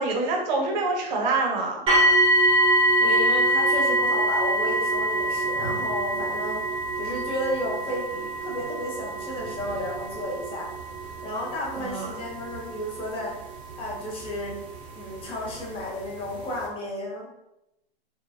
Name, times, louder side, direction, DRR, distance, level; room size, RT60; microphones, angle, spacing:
voice 1, 0.0-1.8 11.8-12.1, right 3 dB, 45° right, 0 dB, 0.9 m, -26 dB
sound 1, 1.9-14.7 15.6-15.7 16.3-16.4, right 1 dB, 15° right, 0.7 m, -25 dB
voice 2, 3.0-6.6 6.9-8.1 8.4-10.7 11.2-13.4 13.8-14.6 14.9-17.3, left 1 dB, 15° left, -3 dB, 0.7 m, -32 dB
2.9 x 2.3 x 2.6 m, 0.87 s
figure-of-eight pair, 115°, 32 cm